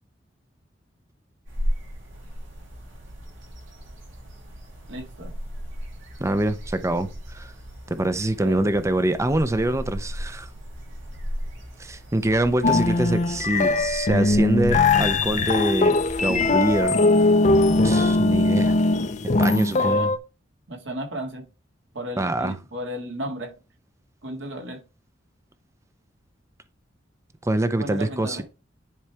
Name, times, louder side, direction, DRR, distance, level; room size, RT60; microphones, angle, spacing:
sound 1, 1.4-16.8, equal, 85° right, 2.7 m, -36 dB
voice 1, 4.9-5.3 8.4-8.6 19.7-20.1 20.7-21.5 21.9-23.5 24.2-24.8 27.8-28.4, right 1 dB, 70° right, 1.9 m, -34 dB
voice 2, 6.2-7.5 7.9-10.5 11.8-17.0 17.8-18.8 19.4-20.1 22.2-22.6 27.4-28.4, right 1 dB, 15° right, 0.6 m, -25 dB
sound 2, 12.6-20.2, left 2 dB, 40° left, 0.6 m, -20 dB
10.5 x 4.7 x 3.4 m
head